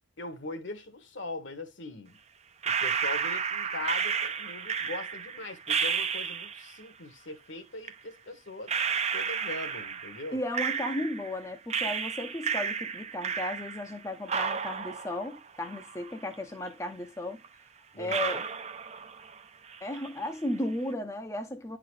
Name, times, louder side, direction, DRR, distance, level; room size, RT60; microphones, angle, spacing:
voice 1, 0.2-2.2 2.8-8.7 9.1-10.4 17.9-18.5, left 2 dB, 65° left, 1.3 m, -40 dB
sound 1, 2.6-6.8 7.8-7.9 8.7-11.4 11.7-14.0 14.3-16.3 16.7-16.8 17.4-17.5 18.1-19.4 19.7-20.2, right 6 dB, 35° right, 0.6 m, -32 dB
voice 2, 10.3-17.4 18.0-18.4 19.8-21.8, left 1 dB, 15° left, 0.6 m, -35 dB
10.0 x 3.9 x 3.2 m
head